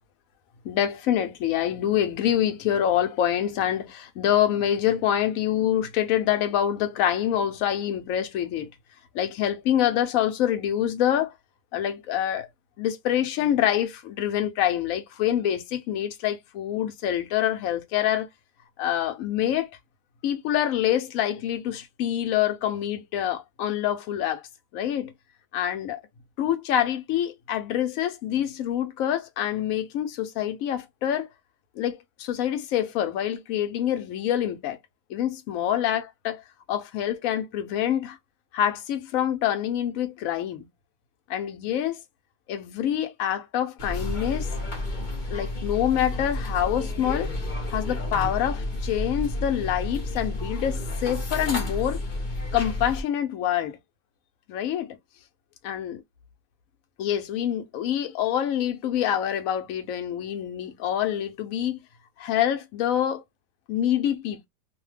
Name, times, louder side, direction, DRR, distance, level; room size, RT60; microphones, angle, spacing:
voice 1, 0.6-8.7 9.1-11.3 11.7-12.5 12.8-18.3 18.8-19.7 20.2-24.4 24.7-25.1 25.5-26.0 26.4-31.3 31.8-34.8 35.1-36.4 36.7-38.2 38.5-40.7 41.3-42.0 42.5-44.5 45.3-47.3 47.7-52.0 52.5-53.8 54.5-55.0 55.6-56.0 57.0-61.8 62.2-63.2 63.7-64.5, left 10 dB, 65° left, 0.9 m, -26 dB
sound 1, 43.8-53.0, left 1 dB, 45° left, 0.6 m, -31 dB
2.7 x 2.2 x 3.1 m
omnidirectional pair, 1.8 m